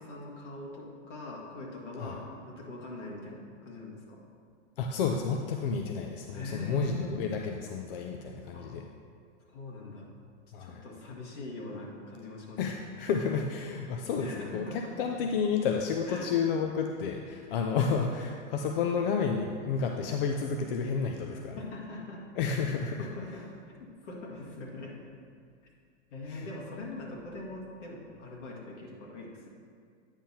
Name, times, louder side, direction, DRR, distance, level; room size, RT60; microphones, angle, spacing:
voice 1, 0.0-4.2 6.3-7.1 8.5-8.7 9.5-10.1 10.6-12.8 14.2-14.9 16.1-16.3 21.6-22.2 23.0-23.4 23.7-24.9 26.1-29.5, left 2 dB, 70° left, -3 dB, 1.8 m, -42 dB
voice 2, 4.8-8.8 10.5-10.8 12.6-21.7 22.4-23.1 26.3-26.5, left 5 dB, 50° left, 3 dB, 0.5 m, -31 dB
8.8 x 5.6 x 2.8 m, 2.2 s
hypercardioid pair, 150°, 37 cm